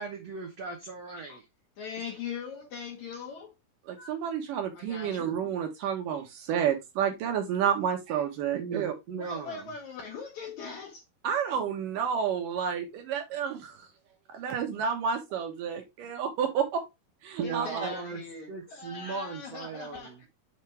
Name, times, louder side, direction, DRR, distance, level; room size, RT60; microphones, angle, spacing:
voice 1, 0.0-1.4 8.5-9.7 17.4-18.2 18.5-20.2, right 5 dB, 85° right, 1.4 m, -37 dB
voice 2, 1.8-3.5 4.0-4.2 4.7-5.3 9.2-11.0 17.4-20.3, left 6 dB, 60° left, 2.1 m, -41 dB
voice 3, 3.9-8.9 11.2-13.8 14.3-16.8 17.2-17.9, right 8 dB, 70° right, 2.4 m, -30 dB
8.2 x 4.4 x 3.3 m
omnidirectional pair, 4.7 m